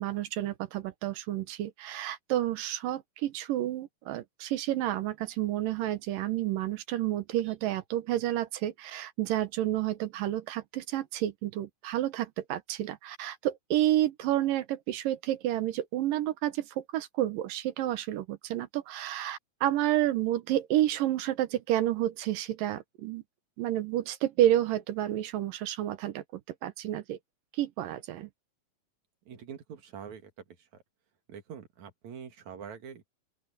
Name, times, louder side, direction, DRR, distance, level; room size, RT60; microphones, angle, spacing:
voice 1, 0.0-23.2 23.6-27.2 27.5-28.3, right 13 dB, 75° right, 2.7 m, -30 dB
voice 2, 29.3-30.3 30.7-30.8 31.3-33.1, right 7 dB, 55° right, 3.1 m, -44 dB
open air
omnidirectional pair, 4.1 m